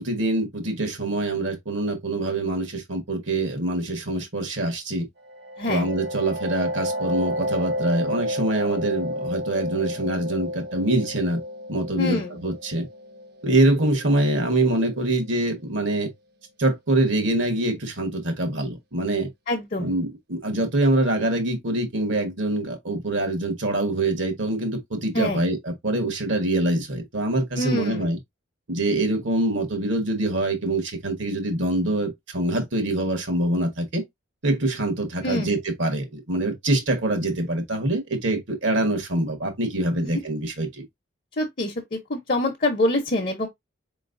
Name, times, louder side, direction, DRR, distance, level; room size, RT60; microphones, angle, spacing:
voice 1, 0.0-5.1 5.7-11.4 11.7-12.9 13.4-16.1 16.6-19.3 19.8-28.2 28.7-34.0 34.4-40.8, right 1 dB, 70° right, 1.3 m, -24 dB
sound 1, 5.2-14.7, equal, 55° right, 0.7 m, -31 dB
voice 2, 5.6-5.9 12.0-12.4 19.5-19.9 25.1-25.4 27.6-28.1 35.2-35.5 40.0-40.2 41.4-43.5, left 1 dB, 45° left, 0.8 m, -25 dB
4.4 x 3.1 x 2.5 m
head